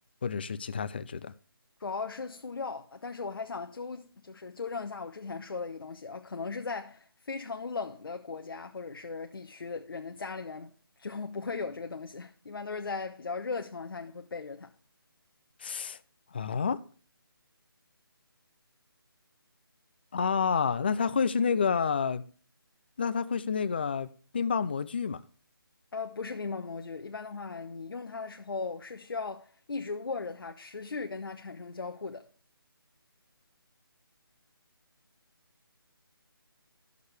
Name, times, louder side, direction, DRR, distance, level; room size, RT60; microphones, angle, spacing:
voice 1, 0.2-1.3 15.6-16.0 16.3-16.8 20.1-22.2 23.0-24.1 24.3-25.2, left 6 dB, 25° left, 0.3 m, -29 dB
voice 2, 1.8-10.7 11.0-14.7 25.9-32.3, left 4 dB, 70° left, 0.9 m, -38 dB
12.5 x 6.6 x 3.2 m
figure-of-eight pair, 165°, 13 cm